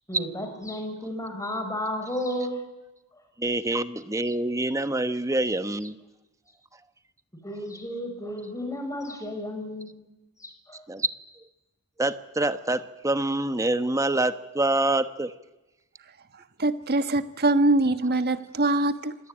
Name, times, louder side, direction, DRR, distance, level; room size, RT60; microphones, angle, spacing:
voice 1, 0.1-2.6 7.4-10.0 10.4-10.8, left 1 dB, 15° left, 6 dB, 5.3 m, -33 dB
voice 2, 3.4-6.0 10.9-11.1 12.0-15.3, right 2 dB, 15° right, 11 dB, 1.1 m, -26 dB
voice 3, 16.3-19.2, right 2 dB, 45° right, 10 dB, 1.4 m, -23 dB
25.5 x 18.5 x 9.9 m, 1.0 s
head